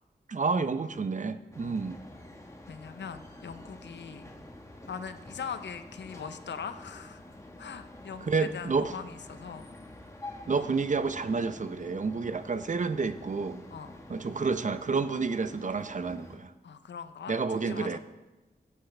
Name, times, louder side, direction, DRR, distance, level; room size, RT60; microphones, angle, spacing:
voice 1, 0.3-2.0 8.3-8.9 10.5-13.6 14.1-16.5 17.3-18.0, right 4 dB, 45° right, 11 dB, 0.7 m, -29 dB
sound 1, 1.5-16.4, left 1 dB, 15° left, 1.3 m, -48 dB
voice 2, 2.7-4.3 4.9-7.2 7.6-9.7 10.5-10.7 13.7-14.0 16.6-18.0, left 6 dB, 85° left, 10 dB, 0.6 m, -41 dB
16.0 x 7.8 x 3.3 m, 1.1 s
cardioid pair, 65°, 18 cm